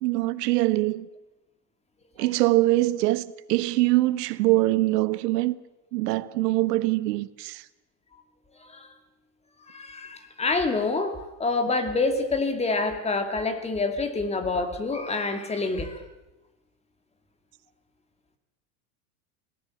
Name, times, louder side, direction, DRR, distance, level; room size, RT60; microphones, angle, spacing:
voice 1, 0.0-1.1 2.2-5.6 5.9-7.6, right 18 dB, 70° right, 1.2 m, -23 dB
voice 2, 9.7-16.0, left 3 dB, 10° left, 2.2 m, -27 dB
26.5 x 17.5 x 7.8 m
supercardioid pair, 150°, 50 cm